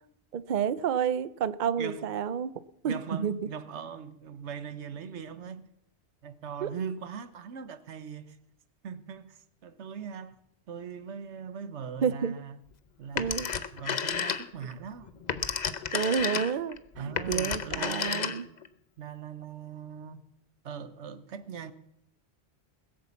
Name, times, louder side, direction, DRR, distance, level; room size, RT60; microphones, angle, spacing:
voice 1, 0.3-2.5 2.8-3.4 6.6-6.7 12.0-12.3 13.1-13.5 15.9-18.5, right 7 dB, 50° right, 0.7 m, -30 dB
voice 2, 2.8-5.7 6.2-8.4 8.8-10.4 10.7-12.6 13.0-15.1 17.0-18.5 19.0-20.2 20.6-21.7, right 7 dB, 90° right, 1.2 m, -40 dB
Telephone, 13.2-14.7 15.1-18.7, left 6 dB, 45° left, 0.8 m, -31 dB
21.0 x 7.6 x 7.2 m
omnidirectional pair, 1.1 m